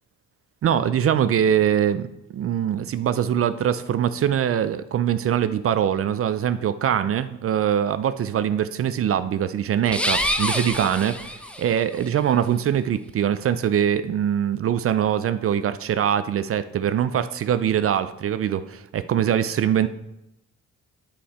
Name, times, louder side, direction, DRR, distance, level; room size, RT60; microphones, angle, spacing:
voice 1, 0.6-2.1 2.3-19.9, right 9 dB, 50° right, 13 dB, 0.5 m, -23 dB
sound 1, 9.9-11.9, left 1 dB, 5° left, 0.7 m, -26 dB
10.0 x 5.6 x 4.2 m, 0.85 s
cardioid pair, 90°, 30 cm